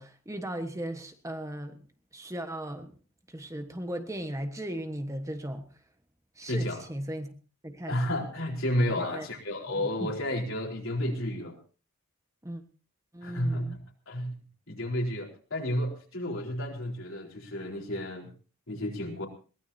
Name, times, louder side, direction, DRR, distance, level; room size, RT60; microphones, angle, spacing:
voice 1, 0.0-1.8 2.1-2.9 3.3-5.6 6.4-7.3 7.6-8.0 8.9-9.3 9.8-10.1 12.4-12.6 13.1-13.8, right 1 dB, 15° right, 7 dB, 1.3 m, -37 dB
voice 2, 6.5-6.8 7.9-11.6 13.2-14.4 14.7-18.3 18.7-19.3, left 1 dB, 65° left, 0 dB, 4.2 m, -31 dB
22.0 x 18.5 x 2.8 m, 0.37 s
head